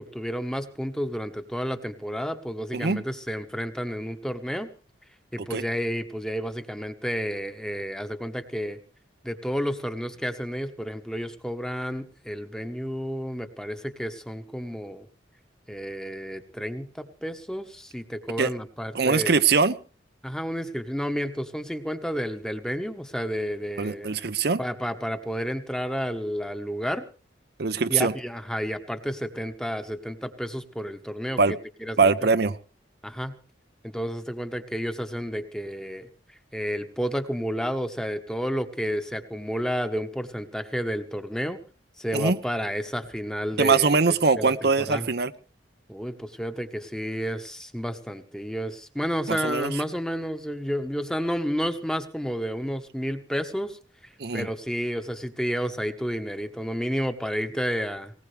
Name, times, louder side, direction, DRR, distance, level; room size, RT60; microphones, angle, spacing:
voice 1, 0.0-4.7 5.3-8.8 9.2-15.1 15.7-19.3 20.2-24.1 24.6-27.0 27.9-31.4 31.8-32.1 33.0-33.3 33.8-36.1 36.5-41.6 42.0-45.1 45.9-58.1, equal, 5° left, 7 dB, 1.2 m, -31 dB
voice 2, 18.9-19.7 23.8-24.6 27.6-28.1 31.4-31.6 32.0-32.6 42.1-42.4 43.6-45.3 49.3-49.7 54.2-54.5, right 4 dB, 60° right, 11 dB, 0.7 m, -22 dB
20.0 x 19.0 x 3.3 m, 0.38 s
head